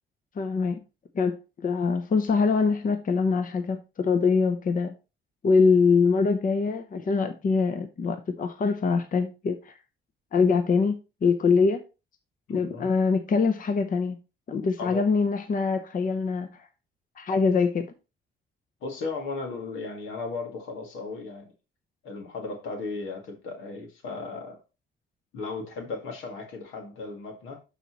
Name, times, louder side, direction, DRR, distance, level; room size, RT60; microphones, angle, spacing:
voice 1, 0.4-0.8 1.1-4.9 5.4-9.8 10.3-11.8 12.5-14.2 14.5-16.5 17.2-17.9, left 4 dB, 45° left, 0.8 m, -24 dB
voice 2, 12.5-12.9 14.8-15.1 18.8-21.5 22.0-24.6 25.3-27.6, left 3 dB, 90° left, 1.9 m, -36 dB
12.0 x 4.1 x 3.0 m
cardioid pair, 90°, 20 cm